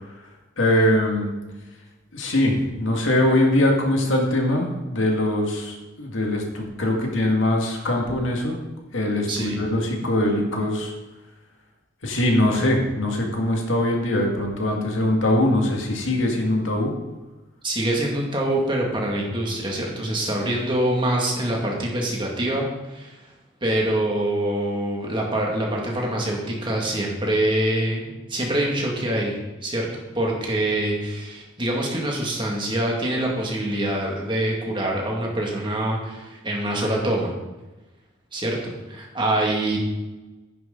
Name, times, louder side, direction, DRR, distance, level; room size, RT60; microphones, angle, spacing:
voice 1, 0.6-1.3 2.1-8.6 8.9-10.9 12.0-16.9, left 1 dB, 80° left, 1 dB, 2.1 m, -22 dB
voice 2, 9.3-9.6 17.6-23.2 23.6-37.3 38.3-39.8, right 1 dB, 25° right, -2 dB, 2.2 m, -25 dB
10.5 x 10.5 x 3.9 m, 1.1 s
head